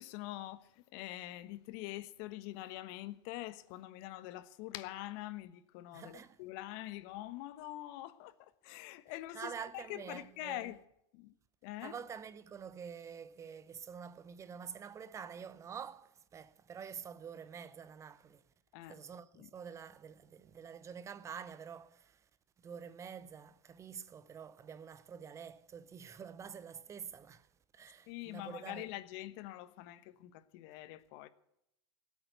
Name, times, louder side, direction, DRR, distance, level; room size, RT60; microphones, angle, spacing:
voice 1, 0.0-10.8 11.1-11.3 11.6-12.0 18.7-19.0 19.4-19.5 28.1-31.3, left 16 dB, 50° left, 1.2 m, -45 dB
voice 2, 5.9-6.4 9.3-10.7 11.8-18.4 18.9-22.2 22.6-27.5 27.7-28.9, right 7 dB, 20° right, 0.8 m, -47 dB
17.5 x 8.5 x 9.3 m
hypercardioid pair, 120°, 15 cm